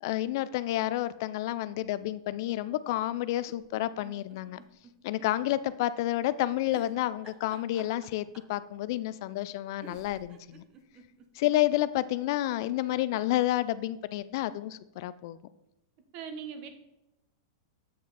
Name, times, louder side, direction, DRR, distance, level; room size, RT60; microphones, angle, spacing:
voice 1, 0.0-4.6 5.0-10.6 11.4-15.4, left 14 dB, 60° left, 16 dB, 0.3 m, -30 dB
sound 1, 3.4-5.3 5.6-5.7 6.7-8.6 9.5-9.6 9.8-11.6 12.0-12.1 12.3-12.4, right 6 dB, 30° right, 0.9 m, -52 dB
voice 2, 16.1-16.7, right 7 dB, 50° right, 7 dB, 1.2 m, -39 dB
8.3 x 5.0 x 4.1 m, 0.90 s
hypercardioid pair, 125°, 2 cm